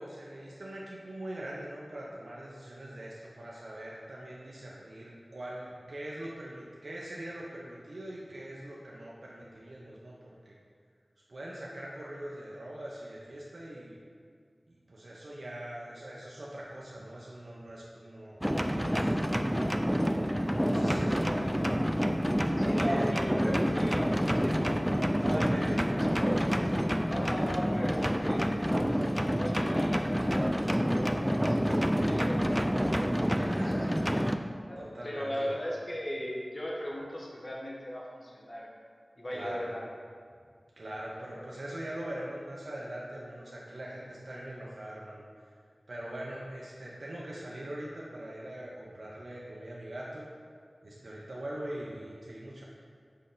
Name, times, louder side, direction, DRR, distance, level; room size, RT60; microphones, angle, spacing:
voice 1, 0.0-10.6 11.3-14.0 14.7-19.1 20.6-21.3 22.8-23.1 25.2-25.8 33.3-33.9 34.8-35.6 39.3-39.7 40.8-45.3 45.9-50.3 50.8-52.6, right 1 dB, 75° right, -5 dB, 0.9 m, -41 dB
sound 1, 18.4-34.4, equal, 5° right, 0.4 m, -28 dB
voice 2, 20.7-21.9 22.6-24.0 24.3-24.5 26.1-26.4 27.1-28.5 28.9-33.6 34.7-34.8 35.0-38.7 39.2-39.9, equal, 50° left, -3 dB, 1.3 m, -38 dB
6.4 x 5.3 x 3.8 m, 2.1 s
wide cardioid pair, 45°, 0 cm